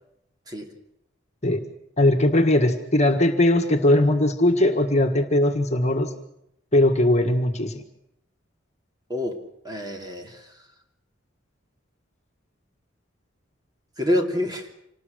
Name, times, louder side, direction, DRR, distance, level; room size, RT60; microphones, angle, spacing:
voice 1, 2.0-6.1 6.7-7.8, left 1 dB, 35° left, 4 dB, 1.7 m, -20 dB
voice 2, 9.6-10.4 14.0-14.7, left 1 dB, 20° right, 3 dB, 2.8 m, -26 dB
26.5 x 19.5 x 6.4 m, 0.78 s
head